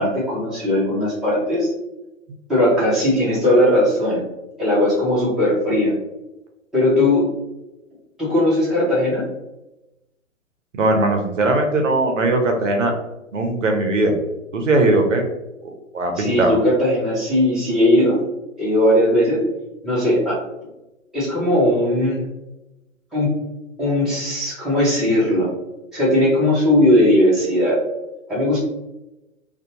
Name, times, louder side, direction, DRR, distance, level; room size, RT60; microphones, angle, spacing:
voice 1, 0.0-1.7 2.5-4.2 4.6-5.9 6.7-7.3 8.2-9.3 16.2-18.2 18.6-19.4 19.8-20.4 21.1-22.2 23.1-23.3 23.8-25.5 25.9-27.8 28.3-28.6, left 1 dB, ahead, -10 dB, 0.7 m, -18 dB
voice 2, 10.7-12.9 13.3-14.2 14.5-15.3 15.6-16.6, right 2 dB, 70° right, 3 dB, 0.7 m, -19 dB
2.6 x 2.3 x 2.8 m, 0.97 s
figure-of-eight pair, 120°, 39 cm